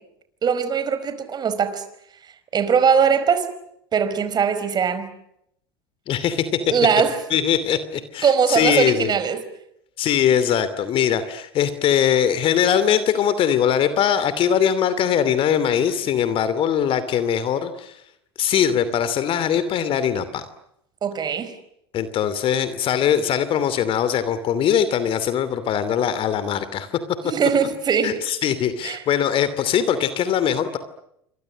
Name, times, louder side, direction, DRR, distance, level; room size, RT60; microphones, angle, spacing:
voice 1, 0.4-1.8 2.5-3.5 3.9-5.1 6.5-7.2 8.2-9.4 21.0-21.6 27.2-28.2 28.8-29.0, right 7 dB, 35° right, 11 dB, 4.9 m, -20 dB
voice 2, 6.1-6.5 7.3-9.1 10.0-18.0 18.4-20.4 21.9-26.9 28.0-30.8, left 9 dB, 45° left, 13 dB, 2.8 m, -21 dB
29.5 x 26.0 x 6.5 m, 0.75 s
hypercardioid pair, 80°, 13 cm